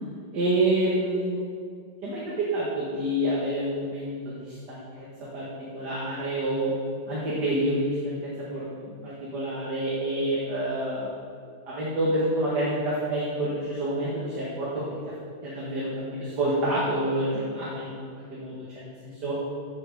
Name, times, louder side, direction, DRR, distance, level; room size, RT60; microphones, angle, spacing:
voice 1, 0.3-1.4 2.0-5.1 5.3-5.5 5.7-6.7 7.1-8.2 8.5-11.1 11.7-14.8 15.4-19.4, right 1 dB, 60° right, -7 dB, 2.4 m, -28 dB
8.4 x 7.8 x 6.8 m, 2.2 s
omnidirectional pair, 2.1 m